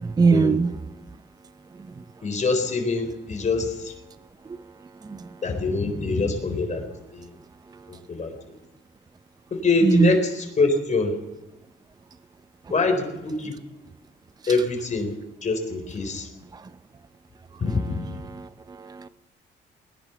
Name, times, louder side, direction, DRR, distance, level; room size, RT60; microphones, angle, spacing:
voice 1, 0.0-0.8 5.1-5.3 9.8-10.1 16.5-16.6 18.3-19.1, right 4 dB, 20° right, 14 dB, 0.5 m, -21 dB
voice 2, 2.2-3.9 5.4-6.8 7.1-7.3 7.9-8.6 9.5-11.1 12.7-13.5 14.5-15.1 15.4-16.3 17.6-18.2, left 3 dB, 35° left, 5 dB, 4.0 m, -24 dB
19.5 x 10.5 x 6.9 m, 1.0 s
cardioid pair, 90°, 20 cm